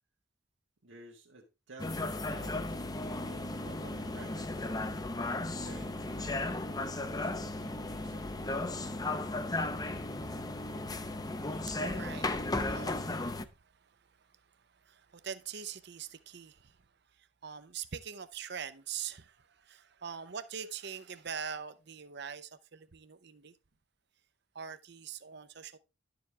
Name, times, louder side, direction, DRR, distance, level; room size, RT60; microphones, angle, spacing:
voice 1, 0.8-8.6, right 3 dB, 85° right, 1.6 m, -54 dB
sound 1, 1.8-13.5, left 2 dB, 20° left, 0.6 m, -35 dB
voice 2, 11.6-16.8 17.2-23.5 24.5-25.8, right 7 dB, 60° right, 0.8 m, -44 dB
11.0 x 6.9 x 3.3 m
head